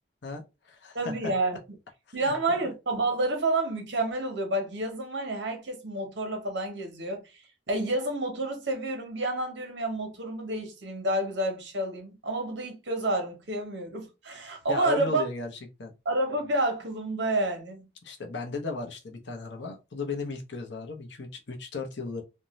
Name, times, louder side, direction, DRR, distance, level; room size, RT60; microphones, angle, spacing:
voice 1, 0.2-1.1 2.2-2.7 14.7-15.5 15.8-15.9 18.0-22.2, left 4 dB, 70° left, 0.7 m, -36 dB
voice 2, 0.9-1.6 2.1-15.2 16.0-17.9, right 2 dB, 70° right, 0.9 m, -29 dB
2.5 x 2.2 x 3.0 m
head